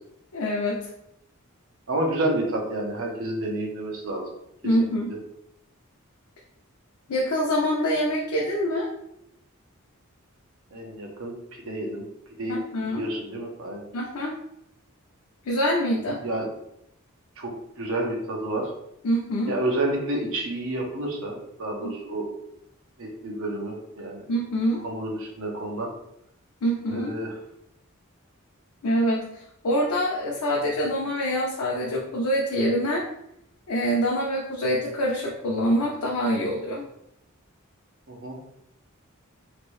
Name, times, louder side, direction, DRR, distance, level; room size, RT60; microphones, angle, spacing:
voice 1, 0.3-0.8 4.6-5.1 7.1-8.9 12.5-13.0 13.9-14.4 15.5-16.2 19.0-19.5 21.8-21.9 24.3-24.8 26.6-27.2 28.8-33.0 33.7-36.9, equal, 90° left, -3 dB, 0.6 m, -25 dB
voice 2, 1.9-4.2 10.7-11.4 11.6-12.1 12.4-12.6 12.9-13.9 16.2-16.5 17.4-17.5 17.8-18.7 19.5-22.3 23.0-24.2 24.8-25.9 26.9-27.3 38.1-38.4, right 1 dB, 65° right, 0 dB, 0.7 m, -29 dB
2.9 x 2.6 x 3.1 m, 0.78 s
head